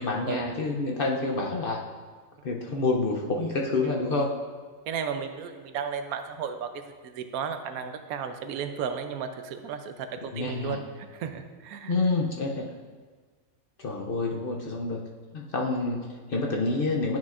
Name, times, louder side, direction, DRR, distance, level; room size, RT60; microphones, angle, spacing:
voice 1, 0.0-1.8 2.4-4.3 10.3-10.8 11.9-12.7 13.8-15.0 15.3-17.2, left 3 dB, 55° left, 0 dB, 0.6 m, -28 dB
voice 2, 4.9-10.8 11.1-12.0, right 7 dB, 80° right, 8 dB, 1.1 m, -34 dB
10.0 x 6.1 x 2.5 m, 1.5 s
omnidirectional pair, 1.5 m